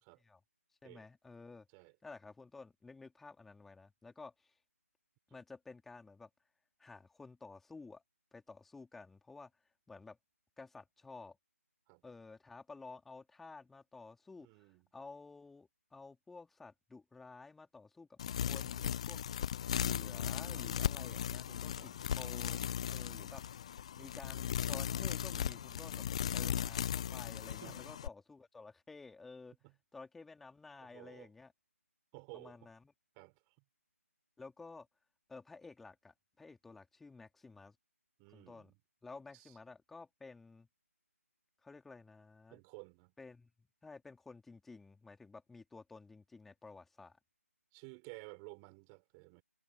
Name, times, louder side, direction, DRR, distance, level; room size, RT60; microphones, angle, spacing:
voice 1, 0.8-1.7 2.0-4.5 5.3-6.3 6.8-8.0 8.3-9.5 9.9-10.2 10.6-11.4 12.0-14.5 14.9-18.2 18.5-19.2 19.7-23.4 24.0-29.6 29.9-31.5 32.3-32.9 34.4-34.9 35.3-37.8 38.3-38.7 39.0-40.7 41.6-42.6 43.2-43.5 43.8-47.2, left 3 dB, 5° left, 4.0 m, -53 dB
voice 2, 14.4-14.9 21.8-21.9 27.6-27.8 29.6-29.7 30.8-31.3 32.1-32.6 33.1-33.5 38.2-38.8 39.3-39.5 42.5-43.1 47.7-49.4, right 40 dB or more, 15° right, 6.6 m, -54 dB
sound 1, 18.2-28.1, left 9 dB, 25° left, 0.8 m, -37 dB
figure-of-eight pair, 150°, 8 cm